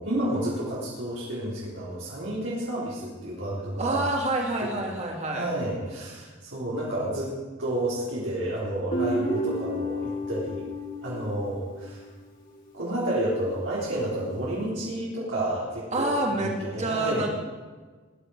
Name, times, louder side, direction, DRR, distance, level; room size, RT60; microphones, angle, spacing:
voice 1, 0.0-4.0 5.3-7.3 7.6-10.6 11.0-12.0 12.7-17.2, right 1 dB, 65° right, -7 dB, 4.1 m, -30 dB
voice 2, 3.8-5.5 15.9-17.3, right 2 dB, 35° right, 0 dB, 3.0 m, -27 dB
Guitar, 8.9-12.2, equal, 45° left, 3.7 m, -31 dB
20.5 x 11.5 x 5.0 m, 1.4 s
head